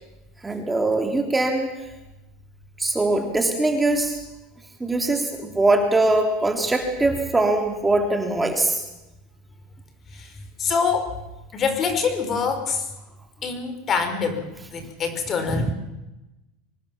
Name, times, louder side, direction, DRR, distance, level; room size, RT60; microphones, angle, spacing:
voice 1, 0.4-1.7 2.8-4.2 4.8-8.8 15.5-15.6, right 2 dB, 10° right, 3 dB, 3.4 m, -22 dB
voice 2, 10.6-11.1 11.5-12.9 13.4-15.7, left 5 dB, 35° left, 8 dB, 5.5 m, -25 dB
25.0 x 19.5 x 7.4 m, 0.98 s
supercardioid pair, 110°, 0 cm